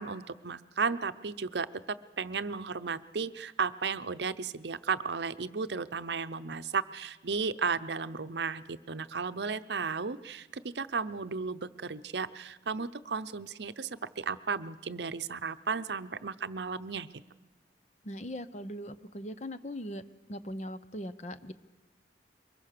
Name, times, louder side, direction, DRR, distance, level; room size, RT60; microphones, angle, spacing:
voice 1, 0.0-1.7 2.2-17.1, right 5 dB, 70° right, 12 dB, 0.7 m, -34 dB
voice 2, 18.0-20.0 20.3-21.5, equal, 40° left, 12 dB, 0.8 m, -40 dB
23.5 x 21.5 x 6.7 m, 1.1 s
head